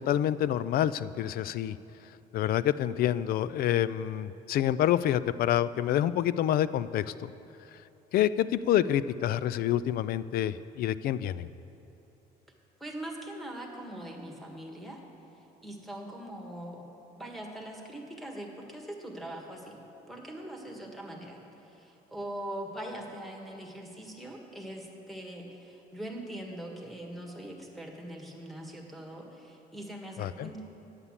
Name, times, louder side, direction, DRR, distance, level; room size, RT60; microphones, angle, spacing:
voice 1, 0.0-1.8 2.3-7.3 8.1-11.5 30.2-30.5, left 11 dB, 65° left, 16 dB, 0.4 m, -27 dB
voice 2, 12.8-15.0 15.6-16.8 17.2-19.8 20.1-30.6, right 1 dB, ahead, 0 dB, 1.6 m, -42 dB
9.7 x 8.3 x 7.3 m, 2.9 s
cardioid pair, 110°, 17 cm